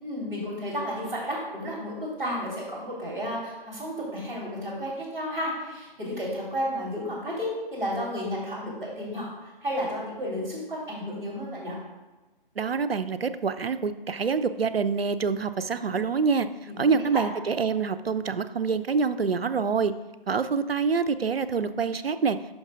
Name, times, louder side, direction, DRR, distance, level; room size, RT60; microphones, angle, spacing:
voice 1, 0.0-11.8 16.7-17.2, equal, 10° right, -10 dB, 2.6 m, -32 dB
voice 2, 12.6-16.5 16.8-19.9 20.3-22.4, right 5 dB, 90° right, 12 dB, 0.5 m, -26 dB
11.5 x 5.9 x 2.5 m, 1.1 s
figure-of-eight pair, 150°, 29 cm